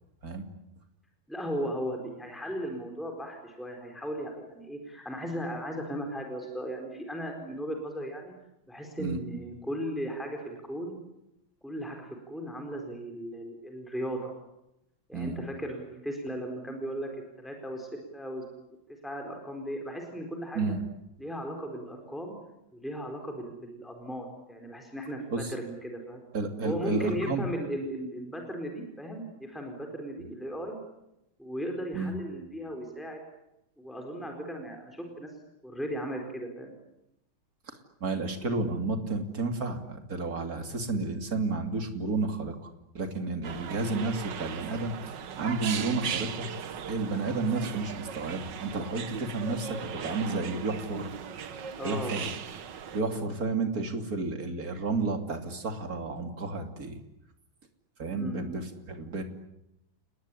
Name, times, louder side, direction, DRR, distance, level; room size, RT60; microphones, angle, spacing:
voice 1, 1.3-8.3 8.7-11.0 11.6-14.4 15.1-17.1 17.4-17.9 18.1-18.4 19.0-20.7 21.2-22.4 22.7-25.2 25.5-26.2 26.6-30.8 31.4-33.2 33.8-35.3 35.6-36.7 51.8-52.3 58.1-58.5, equal, ahead, 3 dB, 4.3 m, -36 dB
voice 2, 26.3-27.5 31.9-32.1 37.7-37.8 38.0-42.6 42.9-46.5 46.9-51.1 51.4-52.3 52.9-57.0 58.0-59.2, right 3 dB, 45° right, 5 dB, 3.2 m, -31 dB
sound 1, 43.4-53.0, right 8 dB, 65° right, 1.9 m, -38 dB
30.0 x 19.5 x 9.9 m, 0.88 s
omnidirectional pair, 2.1 m